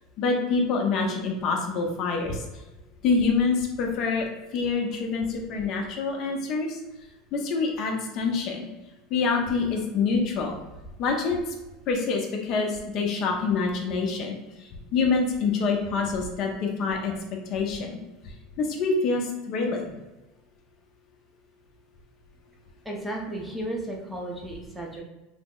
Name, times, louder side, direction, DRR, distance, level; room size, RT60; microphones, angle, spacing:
voice 1, 0.2-2.4 3.0-6.8 7.3-8.7 9.1-10.6 11.0-11.4 11.9-17.1 17.5-18.0 18.2-19.8, left 4 dB, 45° left, 2 dB, 0.5 m, -26 dB
voice 2, 22.8-25.0, right 1 dB, 5° right, -2 dB, 0.6 m, -34 dB
3.4 x 2.0 x 3.6 m, 1.1 s
supercardioid pair, 140°, 0 cm